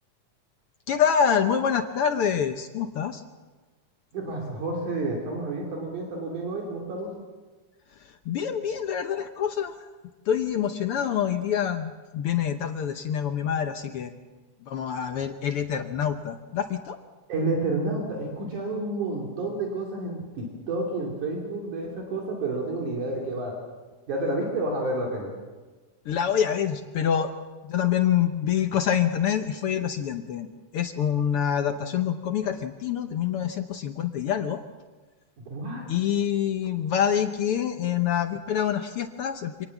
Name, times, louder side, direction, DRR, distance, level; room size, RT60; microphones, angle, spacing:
voice 1, 0.9-3.2 8.3-9.7 10.3-14.1 14.7-17.0 26.1-27.3 27.6-30.5 30.7-34.6 35.9-39.7, left 8 dB, 75° left, 7 dB, 1.3 m, -26 dB
voice 2, 4.1-7.1 17.3-23.5 24.1-25.3 35.5-35.9, right 2 dB, 70° right, -1 dB, 4.2 m, -30 dB
26.0 x 19.0 x 7.2 m, 1.3 s
omnidirectional pair, 3.6 m